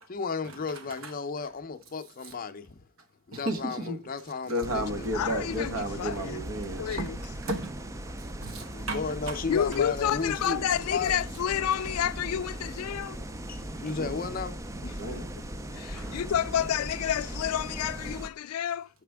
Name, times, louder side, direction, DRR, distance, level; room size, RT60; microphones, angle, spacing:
voice 1, 0.0-2.7 3.3-5.4 8.7-11.1 13.5-14.5, left 4 dB, 40° left, 0.6 m, -34 dB
voice 2, 3.3-4.0 4.5-7.8 8.4-9.4 13.9-14.2 14.9-15.3 15.9-16.2, right 1 dB, 70° right, 1.2 m, -33 dB
sound 1, 4.6-18.3, right 1 dB, 15° right, 0.3 m, -39 dB
voice 3, 5.1-6.5 6.8-7.2 9.5-13.2 14.8-15.4 15.7-18.9, left 9 dB, 90° left, 0.3 m, -30 dB
6.6 x 5.0 x 3.4 m
head